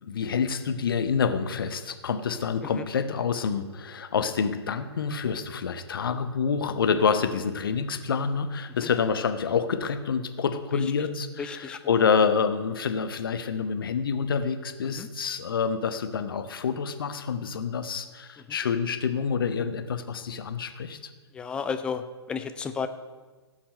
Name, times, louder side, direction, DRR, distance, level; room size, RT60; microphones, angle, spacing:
voice 1, 0.0-21.0, left 6 dB, 50° left, 10 dB, 1.0 m, -27 dB
voice 2, 11.4-11.8 14.9-15.1 21.3-22.9, left 6 dB, 5° left, 9 dB, 0.4 m, -32 dB
16.0 x 5.8 x 6.5 m, 1.3 s
figure-of-eight pair, 125°, 15 cm